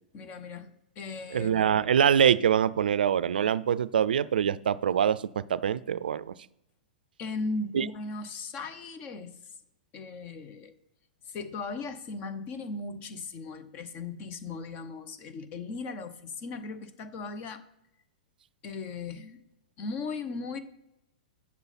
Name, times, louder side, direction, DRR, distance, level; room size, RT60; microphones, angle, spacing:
voice 1, 0.1-1.6 7.2-9.4 9.9-10.7 11.3-17.6 18.6-19.4 19.8-20.6, left 3 dB, 35° left, 12 dB, 0.8 m, -37 dB
voice 2, 1.3-5.2 5.5-6.3 7.7-7.9, right 8 dB, 80° right, 18 dB, 0.4 m, -24 dB
8.3 x 6.9 x 4.2 m, 0.85 s
hypercardioid pair, 125°, 5 cm